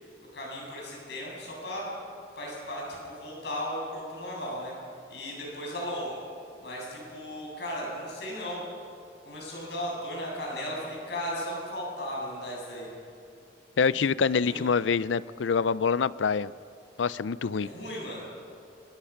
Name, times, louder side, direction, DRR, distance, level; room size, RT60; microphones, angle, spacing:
voice 1, 0.3-1.9 2.4-4.7 5.1-6.2 6.6-8.6 9.2-12.9 13.9-14.0 14.4-14.6 17.6-18.2, equal, 60° left, -3 dB, 7.8 m, -36 dB
voice 2, 13.8-16.5 17.0-17.7, left 5 dB, 85° left, 18 dB, 0.5 m, -25 dB
25.0 x 20.0 x 5.8 m, 2.5 s
head